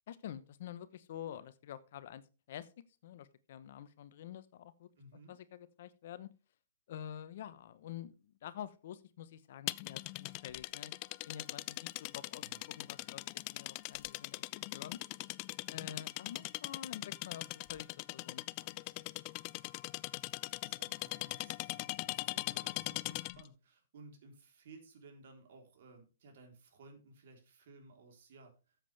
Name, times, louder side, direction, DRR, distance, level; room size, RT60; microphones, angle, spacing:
voice 1, 0.1-2.2 2.5-2.7 3.0-4.9 5.3-6.3 6.9-10.9 11.3-13.2 13.5-15.0 15.7-19.1, left 10 dB, 60° left, 14 dB, 0.9 m, -48 dB
voice 2, 5.0-5.4 12.4-12.7 15.7-16.1 20.0-28.8, right 3 dB, 65° right, 3 dB, 3.7 m, -58 dB
sound 1, 9.7-23.5, left 22 dB, 40° left, 0.4 m, -41 dB
13.5 x 7.6 x 3.4 m, 0.32 s
hypercardioid pair, 125°, 0 cm